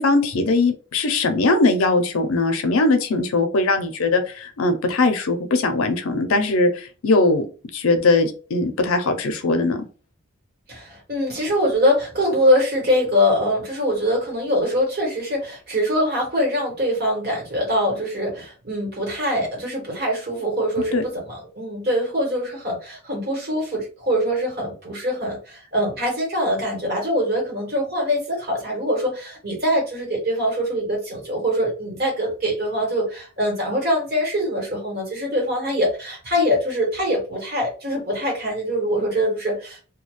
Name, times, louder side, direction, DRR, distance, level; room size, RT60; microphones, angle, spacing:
voice 1, 0.0-7.5 7.7-9.8 20.9-21.0, left 2 dB, 75° left, 7 dB, 0.5 m, -20 dB
voice 2, 10.7-39.8, equal, 45° right, -2 dB, 1.2 m, -23 dB
2.3 x 2.2 x 3.0 m, 0.36 s
head